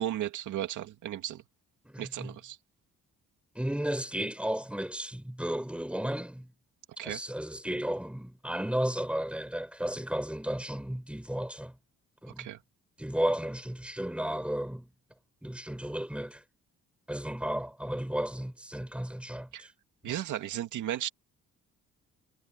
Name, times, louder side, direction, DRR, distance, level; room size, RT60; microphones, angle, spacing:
voice 1, 0.0-1.4 2.0-2.6 7.0-7.2 12.4-12.6 19.5-19.7 20.0-21.1, right 12 dB, 80° right, 2.4 m, -35 dB
voice 2, 1.8-2.4 3.5-6.5 7.0-11.8 12.2-12.5 13.0-14.9 15.4-16.4 17.1-19.7 20.1-20.2, right 1 dB, 5° right, 6.3 m, -34 dB
cardioid pair, 90°, 30 cm